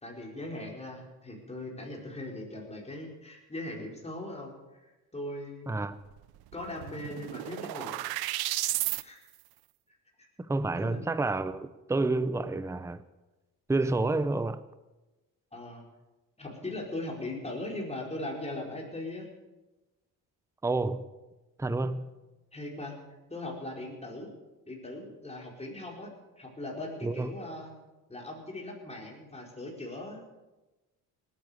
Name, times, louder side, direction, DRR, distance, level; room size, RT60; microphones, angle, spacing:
voice 1, 0.0-4.5 5.1-5.8 6.5-8.2 8.4-8.7 9.0-9.2 9.9-10.0 10.8-11.1 15.5-15.8 16.4-19.3 21.8-21.9 22.5-23.0 23.3-24.3 24.7-27.7 28.1-30.2, left 1 dB, 15° left, 4.6 m, -39 dB
sound 1, 6.2-6.3 6.5-9.0, right 17 dB, 80° right, 0.7 m, -33 dB
voice 2, 10.5-13.0 13.7-14.6 20.6-21.0 21.6-22.1 27.0-27.3, right 2 dB, 10° right, 0.7 m, -29 dB
19.0 x 9.8 x 6.5 m
cardioid pair, 85°, 37 cm